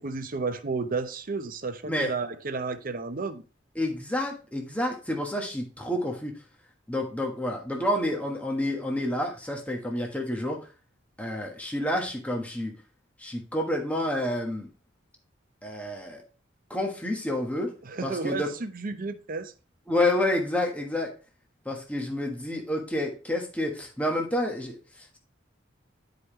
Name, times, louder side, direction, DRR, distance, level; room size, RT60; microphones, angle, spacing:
voice 1, 0.0-3.4 17.8-19.5, right 4 dB, 50° right, 0.7 m, -32 dB
voice 2, 3.7-6.4 6.9-10.6 11.2-12.7 13.2-14.7 15.6-16.2 16.7-17.7 18.0-18.5 19.9-21.1 21.6-24.8, left 1 dB, 10° left, 1.3 m, -29 dB
9.5 x 5.0 x 3.1 m
head